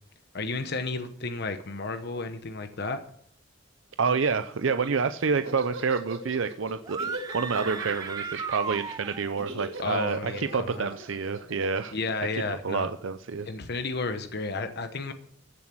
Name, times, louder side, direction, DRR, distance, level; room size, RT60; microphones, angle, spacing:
voice 1, 0.3-3.0 9.8-10.9 11.9-12.9 13.5-15.1, left 3 dB, 55° left, 8 dB, 1.0 m, -32 dB
voice 2, 4.0-11.9 12.6-13.5, right 5 dB, 70° right, 10 dB, 0.6 m, -28 dB
Laughter, 4.5-12.9, right 2 dB, 90° right, 6.2 m, -39 dB
sound 1, 6.8-9.4, right 5 dB, 20° right, 0.4 m, -36 dB
15.0 x 7.2 x 6.1 m, 0.67 s
head